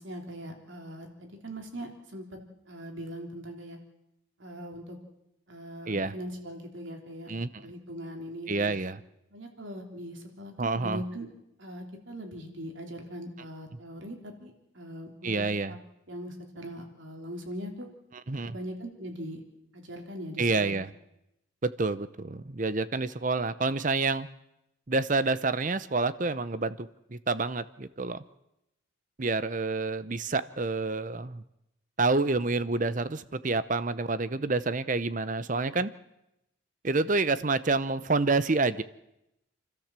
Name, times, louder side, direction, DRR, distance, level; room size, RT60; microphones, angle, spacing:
voice 1, 0.0-2.3 2.7-3.8 4.4-5.0 5.5-7.3 7.6-8.7 9.3-11.3 11.6-15.8 16.1-17.9 18.4-19.4 19.7-20.7, equal, 65° right, 3 dB, 3.5 m, -40 dB
voice 2, 8.5-9.0 10.6-11.0 15.2-15.8 18.3-18.6 20.4-20.9 21.6-24.3 24.9-28.2 29.2-31.4 32.0-35.9 36.8-38.8, right 3 dB, 40° right, 14 dB, 0.7 m, -28 dB
28.5 x 13.0 x 7.5 m, 0.86 s
head